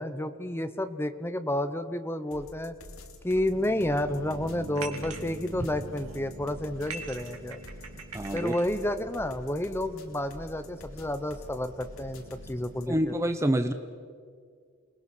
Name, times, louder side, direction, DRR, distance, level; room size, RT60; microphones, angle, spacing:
voice 1, 0.0-2.7 3.2-7.6 8.3-13.2, left 1 dB, 10° left, 10 dB, 0.9 m, -30 dB
sound 1, 2.3-13.0, left 1 dB, 70° left, 3.0 m, -48 dB
sound 2, 3.5-12.9, right 1 dB, 40° right, 5.1 m, -46 dB
sound 3, 4.7-5.3 5.8-6.2 6.8-8.7, right 5 dB, 90° right, 2.7 m, -42 dB
voice 2, 8.1-8.5 12.9-13.7, right 1 dB, 15° right, 8 dB, 0.7 m, -27 dB
29.5 x 20.5 x 6.2 m, 2.1 s
head